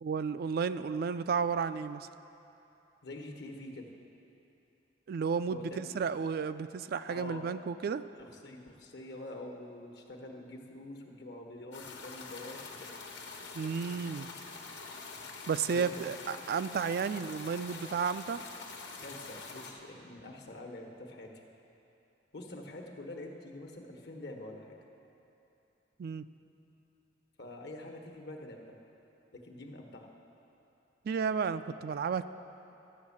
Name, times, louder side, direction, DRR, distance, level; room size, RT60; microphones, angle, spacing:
voice 1, 0.0-2.1 5.1-8.0 13.5-14.3 15.5-18.4 26.0-26.2 31.1-32.3, right 6 dB, 55° right, 12 dB, 0.3 m, -32 dB
voice 2, 3.0-3.9 5.5-6.0 7.1-7.5 8.2-12.9 15.7-16.1 19.0-21.3 22.3-24.8 27.4-28.7 29.3-30.1, left 1 dB, 65° left, 2 dB, 1.2 m, -46 dB
sound 1, 11.7-19.7, left 4 dB, 90° left, 1.3 m, -45 dB
12.5 x 6.4 x 8.5 m, 2.9 s
head